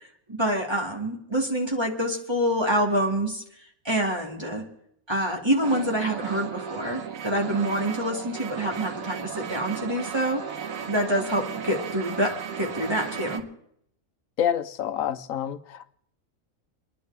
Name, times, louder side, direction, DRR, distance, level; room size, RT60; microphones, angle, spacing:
voice 1, 0.3-3.4 3.8-4.6 5.1-10.4 10.9-13.4, right 1 dB, 20° right, 2.2 m, -26 dB
sound 1, 5.6-13.4, right 7 dB, 90° right, 1.4 m, -35 dB
voice 2, 14.4-15.9, left 9 dB, 90° left, 1.2 m, -28 dB
29.5 x 10.5 x 3.4 m
omnidirectional pair, 1.4 m